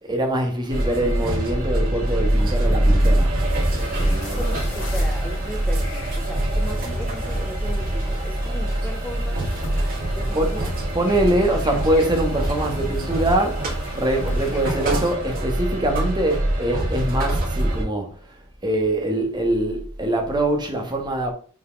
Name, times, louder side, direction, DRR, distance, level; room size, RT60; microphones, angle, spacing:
voice 1, 0.0-3.3 4.0-4.6 10.3-10.6 10.9-18.4 18.6-21.3, right 1 dB, 20° right, 1.5 m, -23 dB
sound 1, 0.7-17.8, right 1 dB, 40° right, 2.3 m, -24 dB
sound 2, 3.5-15.1, left 2 dB, 65° left, 2.2 m, -41 dB
voice 2, 4.0-9.7 10.1-10.7, left 1 dB, 5° left, 0.7 m, -37 dB
5.8 x 4.7 x 5.2 m
head